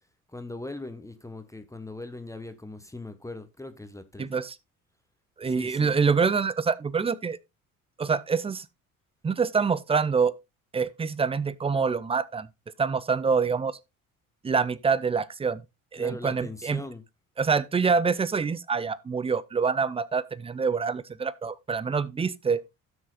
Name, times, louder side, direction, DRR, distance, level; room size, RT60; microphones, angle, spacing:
voice 1, 0.3-4.3 5.4-6.0 15.9-17.0, left 2 dB, 5° left, 1.1 m, -40 dB
voice 2, 4.2-4.6 5.4-7.4 8.0-8.7 9.2-10.3 10.7-12.5 12.8-13.8 14.4-15.6 15.9-16.8 17.4-22.6, right 5 dB, 15° right, 0.5 m, -26 dB
16.5 x 6.2 x 2.4 m
figure-of-eight pair, 55°, 43 cm